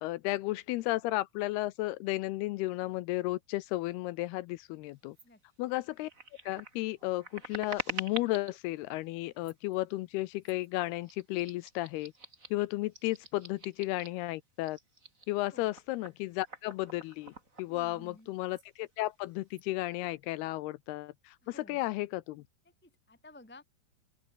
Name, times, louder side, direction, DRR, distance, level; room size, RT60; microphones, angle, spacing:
voice 1, 0.0-5.2 5.6-6.1 6.5-12.1 12.5-14.8 15.3-22.4, left 18 dB, 85° left, 2.3 m, -34 dB
sound 1, 5.1-5.3 5.7-8.6 9.3-9.7 10.4-10.7 11.0-14.3 14.6-18.2 18.5-18.7 19.0-19.6, right 2 dB, 20° right, 4.3 m, -45 dB
voice 2, 17.7-18.3 21.4-21.8 22.8-23.6, left 2 dB, 5° left, 1.1 m, -54 dB
open air
omnidirectional pair, 5.2 m